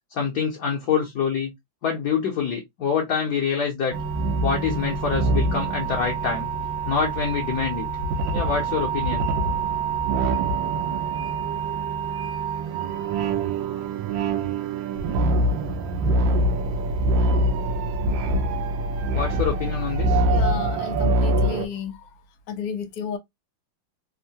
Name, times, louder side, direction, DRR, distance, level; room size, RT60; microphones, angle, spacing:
voice 1, 0.1-1.5 1.8-4.0 4.4-6.5 6.8-7.9 8.3-9.3 19.1-20.2, left 6 dB, 65° left, 1.0 m, -26 dB
sound 1, 3.9-21.7, right 2 dB, 75° right, 1.2 m, -24 dB
voice 2, 20.3-22.1 22.5-23.2, left 6 dB, 85° left, 0.8 m, -32 dB
3.6 x 2.1 x 2.7 m
omnidirectional pair, 2.3 m